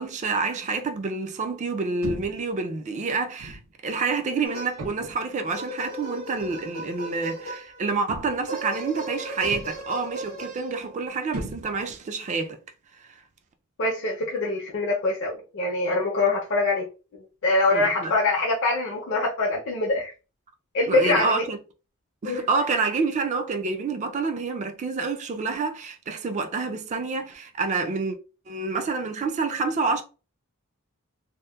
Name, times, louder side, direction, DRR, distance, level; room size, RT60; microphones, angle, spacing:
voice 1, 0.0-12.6 13.0-13.1 17.7-18.1 20.9-21.6 22.2-28.2 28.5-30.0, right 4 dB, 35° right, 0.3 m, -28 dB
sound 1, 2.0-2.5 3.4-3.7 4.8-5.3 6.4-6.6 8.1-8.6 9.4-9.9 11.3-12.0, right 2 dB, 85° right, 0.5 m, -37 dB
sound 2, 4.4-5.1 5.5-7.9 8.5-11.1, right 1 dB, 65° right, 1.3 m, -37 dB
voice 2, 13.8-16.9 17.4-20.1 20.7-21.4 22.2-22.5, left 2 dB, 55° left, 0.5 m, -24 dB
2.7 x 2.0 x 2.2 m
head